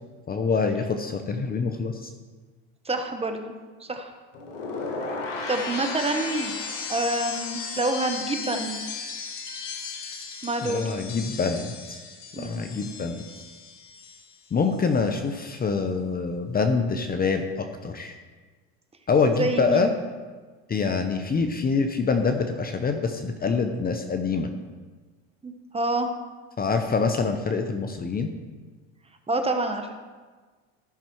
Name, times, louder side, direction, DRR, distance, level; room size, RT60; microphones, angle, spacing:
voice 1, 0.3-2.1 10.6-12.0 12.4-13.2 14.5-18.1 19.1-19.9 20.7-24.5 26.6-28.3, left 4 dB, 25° left, 6 dB, 0.8 m, -25 dB
voice 2, 2.8-3.5 3.8-4.1 5.5-6.6 6.9-8.8 10.4-10.9 12.3-12.6 19.3-19.9 25.4-26.1 29.3-29.9, right 2 dB, 15° right, 6 dB, 1.1 m, -27 dB
sound 1, 4.3-14.4 14.7-15.2, left 4 dB, 90° left, 1.9 m, -35 dB
14.0 x 6.0 x 4.5 m, 1.4 s
supercardioid pair, 95°, 37 cm